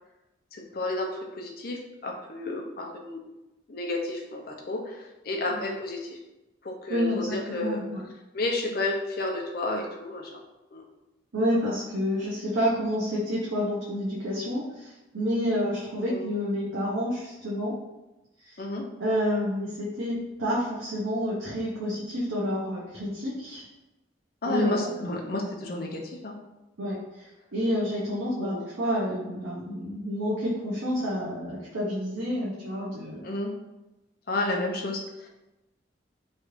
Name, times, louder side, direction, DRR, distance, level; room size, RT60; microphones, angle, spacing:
voice 1, 0.5-3.2 3.7-6.2 6.6-7.8 8.3-10.3 10.7-10.9 16.0-16.3 18.6-18.8 24.4-26.4 28.4-28.6 33.2-33.5 34.3-35.3, left 2 dB, 50° left, 0 dB, 0.5 m, -31 dB
voice 2, 6.9-8.0 11.3-17.8 18.4-18.6 19.0-23.6 24.4-25.1 26.8-33.3, equal, 90° right, -6 dB, 0.7 m, -29 dB
3.1 x 2.4 x 3.0 m, 1.0 s
head